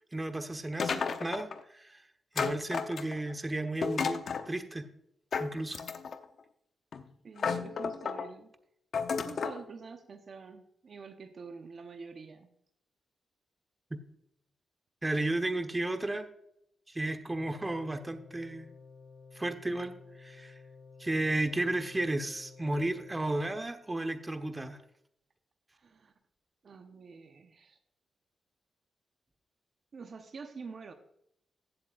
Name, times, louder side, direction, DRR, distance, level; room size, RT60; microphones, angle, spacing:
voice 1, 0.1-2.0 2.3-4.9 5.4-5.8 13.9-14.0 15.0-16.2 16.9-18.7 19.3-20.6 21.0-24.8, right 2 dB, 20° right, 7 dB, 1.2 m, -33 dB
sound 1, 0.8-1.6 2.4-3.3 3.8-4.5 5.3-6.2 6.9-7.0 7.4-8.3 8.9-9.6, left 5 dB, 65° left, 0.8 m, -32 dB
voice 2, 7.2-8.5 9.2-12.5 25.7-26.1 26.6-27.8 29.9-30.9, right 5 dB, 55° right, 6 dB, 1.0 m, -47 dB
sound 2, 17.3-23.6, left 5 dB, 40° left, 2.8 m, -53 dB
16.0 x 7.6 x 2.5 m, 0.74 s
cardioid pair, 70°, 0 cm